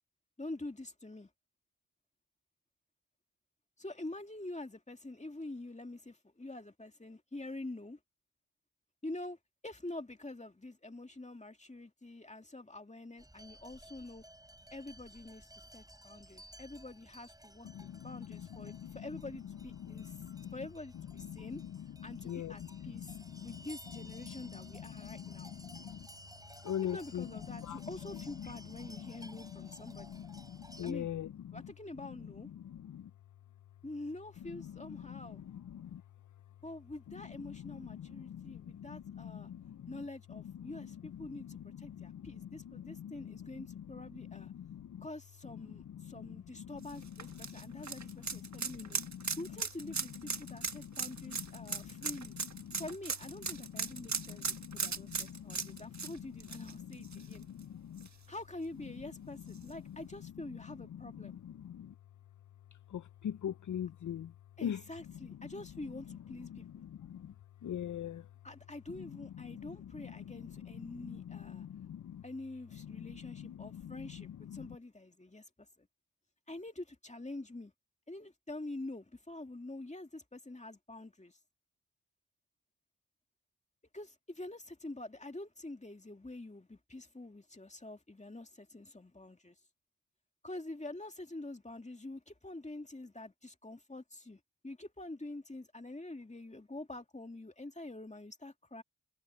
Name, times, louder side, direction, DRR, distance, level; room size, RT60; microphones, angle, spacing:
voice 1, 0.4-1.3 3.8-8.0 9.0-9.4 9.6-14.2 14.7-20.2 20.5-21.6 22.0-23.1 23.4-25.5 26.8-30.3 30.8-31.1 31.5-32.5 33.8-35.4 36.6-39.5 39.9-44.5 45.0-49.0 49.4-52.4 52.8-57.5 58.3-61.4 64.6-66.6 68.4-71.7 72.2-75.4 75.8-75.9 76.5-77.7 78.1-81.3 83.9-89.6 90.4-98.8, left 2 dB, 20° left, 2.3 m, -46 dB
sound 1, 13.2-30.9, right 1 dB, 10° right, 7.2 m, -56 dB
voice 2, 17.7-18.9 19.8-20.5 21.2-21.7 22.0-23.6 24.2-26.1 26.6-27.9 28.4-28.5 28.8-29.1 29.6-31.6 32.6-33.1 34.9-36.0 37.4-40.0 40.6-40.9 41.4-43.8 44.3-45.0 45.9-46.9 47.2-49.4 50.4-50.9 51.3-52.1 52.3-52.8 53.5-56.1 56.7-58.1 59.9-60.0 60.9-61.9 62.9-64.3 64.6-64.8 66.5-67.3 67.6-68.2 69.4-69.7 70.0-72.2 73.1-74.7, left 9 dB, 55° left, 0.5 m, -44 dB
sound 2, 46.8-57.6 58.0-58.1 59.5-59.6, right 5 dB, 50° right, 1.4 m, -38 dB
cardioid pair, 45°, 37 cm